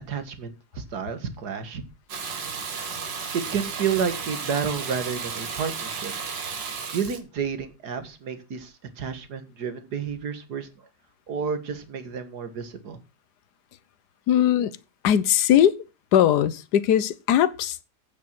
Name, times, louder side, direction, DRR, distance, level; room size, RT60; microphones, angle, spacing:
voice 1, 0.1-1.8 3.1-6.1 6.9-10.9 11.3-13.0, right 6 dB, 65° right, 2.1 m, -30 dB
Water tap faucet / Bathtub (filling or washing), 2.1-7.2, right 5 dB, 85° right, 2.3 m, -33 dB
voice 2, 14.3-14.8 15.0-15.8 16.1-17.8, left 10 dB, 70° left, 1.4 m, -20 dB
9.1 x 7.4 x 6.1 m
omnidirectional pair, 1.9 m